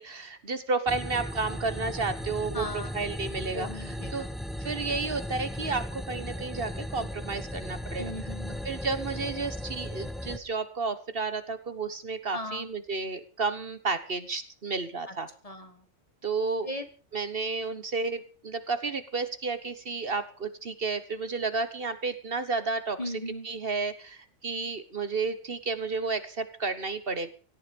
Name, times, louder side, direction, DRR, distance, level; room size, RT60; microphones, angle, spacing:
voice 1, 0.0-4.3 4.6-8.1 8.6-15.3 16.2-16.7 17.1-23.1 23.4-27.3, right 4 dB, 50° right, 12 dB, 1.5 m, -32 dB
sound 1, 0.9-10.4, equal, ahead, 1.1 m, -36 dB
voice 2, 2.5-2.9 3.5-4.3 8.0-8.6 12.3-12.7 15.4-15.8 16.7-16.8 23.0-23.5, left 1 dB, 30° left, 9 dB, 1.6 m, -37 dB
17.5 x 13.5 x 5.3 m, 0.39 s
omnidirectional pair, 1.3 m